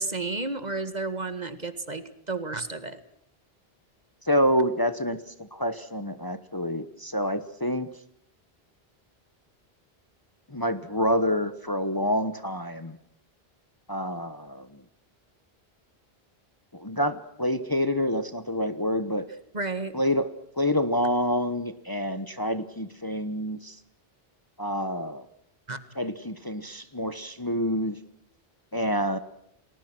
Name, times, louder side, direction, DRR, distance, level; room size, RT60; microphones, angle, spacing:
voice 1, 0.0-3.0 19.5-19.9 25.7-25.8, right 3 dB, 45° right, 11 dB, 2.0 m, -32 dB
voice 2, 4.2-7.9 10.5-13.0 13.9-14.8 16.7-19.3 19.9-23.8 24.6-25.2 25.9-28.0 28.7-29.2, equal, 20° left, 11 dB, 1.2 m, -27 dB
30.0 x 20.5 x 6.1 m, 0.72 s
omnidirectional pair, 1.0 m